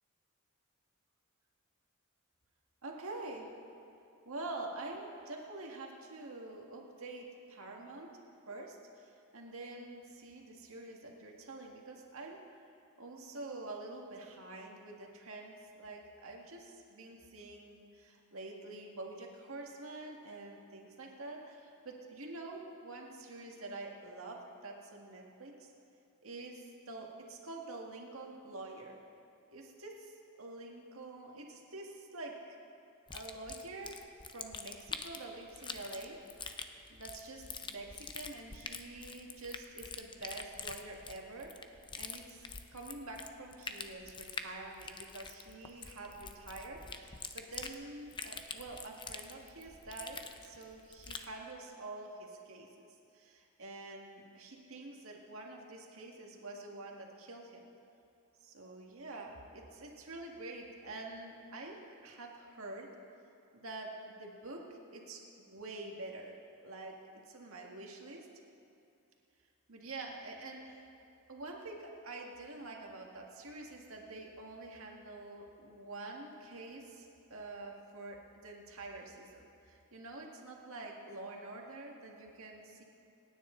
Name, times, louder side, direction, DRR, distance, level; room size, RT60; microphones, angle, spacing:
voice 1, 2.8-3.5 4.3-8.1 8.5-12.4 13.0-25.7 26.2-29.0 29.5-32.3 33.1-36.2 36.9-41.5 42.0-42.5 42.7-52.9 53.1-57.6 58.4-61.8 62.0-62.9 63.5-66.3 66.6-66.9 67.3-68.3 69.7-70.9 71.3-82.8, right 2 dB, 70° right, 0 dB, 1.9 m, -47 dB
sound 1, 33.1-51.3, left 5 dB, 20° left, 0.6 m, -46 dB
27.0 x 9.8 x 3.9 m, 2.7 s
head